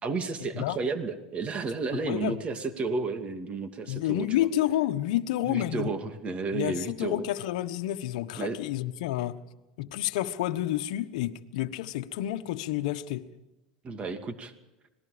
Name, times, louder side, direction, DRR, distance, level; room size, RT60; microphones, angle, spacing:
voice 1, 0.0-4.5 5.5-7.3 8.4-8.6 13.8-14.5, right 4 dB, 30° right, 2.6 m, -32 dB
voice 2, 1.9-2.4 3.9-5.9 6.5-9.4 9.8-13.2, left 14 dB, 70° left, 1.3 m, -29 dB
26.0 x 19.5 x 5.2 m
hypercardioid pair, 100°, 4 cm